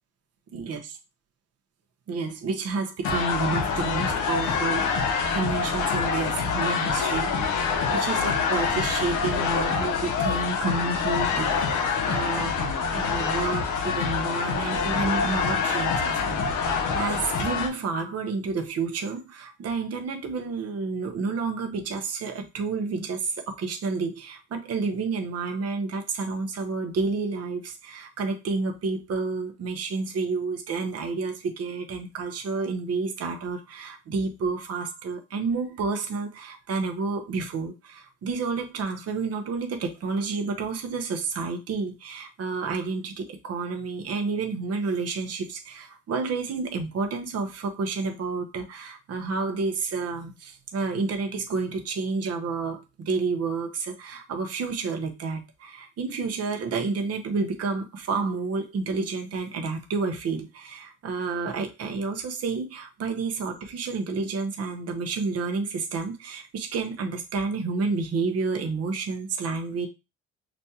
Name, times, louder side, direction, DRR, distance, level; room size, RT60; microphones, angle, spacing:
voice 1, 2.1-69.9, right 4 dB, 55° right, 0.9 m, -30 dB
sound 1, 3.0-17.7, left 5 dB, 85° left, 0.9 m, -26 dB
5.2 x 2.2 x 2.8 m
cardioid pair, 90°, 30 cm